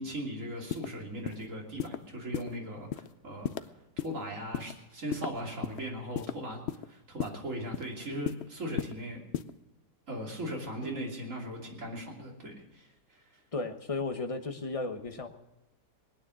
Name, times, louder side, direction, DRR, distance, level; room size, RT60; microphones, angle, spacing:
voice 1, 0.0-3.7 4.0-6.6 6.9-9.2 10.1-13.2, equal, 45° right, 0 dB, 3.3 m, -38 dB
sound 1, 0.7-0.9 1.3-1.4 1.8-2.0 2.3-2.5 2.9-3.1 3.4-3.6 4.0-4.1 4.5-4.7 5.1-5.8 6.2-6.3 6.7-6.9 7.2-7.4 7.7-7.9 8.3-8.4 8.8-8.9 9.3-9.5, left 9 dB, 65° left, 0.6 m, -33 dB
voice 2, 13.5-15.3, left 3 dB, 25° left, 5 dB, 1.0 m, -34 dB
21.0 x 9.4 x 6.2 m, 0.98 s
omnidirectional pair, 1.8 m